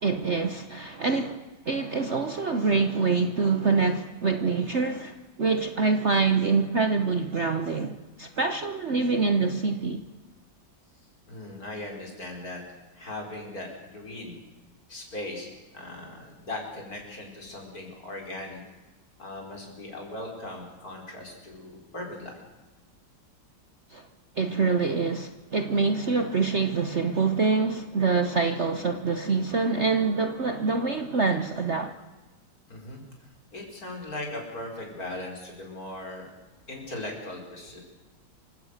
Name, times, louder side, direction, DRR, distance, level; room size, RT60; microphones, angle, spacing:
voice 1, 0.0-10.0 23.9-24.1 24.4-31.9, right 4 dB, 45° right, 1.1 m, -25 dB
voice 2, 11.3-12.6 12.9-14.4 14.9-18.6 19.2-22.4 32.7-33.0 33.5-36.3 36.7-37.9, left 2 dB, 45° left, 5.5 m, -38 dB
28.0 x 17.0 x 6.6 m
omnidirectional pair, 2.1 m